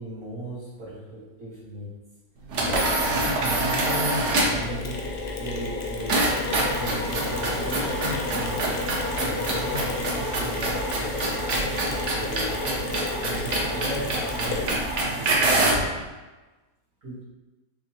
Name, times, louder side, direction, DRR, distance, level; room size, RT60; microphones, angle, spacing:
voice 1, 0.0-1.9 3.1-5.0 5.4-6.3 6.8-9.8 10.1-11.6 11.9-14.7 15.2-15.8 17.0-17.2, equal, 75° right, -9 dB, 2.2 m, -37 dB
sound 1, 2.5-4.7 6.1-15.9, right 2 dB, 60° right, 1.0 m, -26 dB
Mechanisms, 2.7-15.0, left 3 dB, 60° left, 0.5 m, -32 dB
6.3 x 2.2 x 2.9 m, 1.2 s
omnidirectional pair, 1.5 m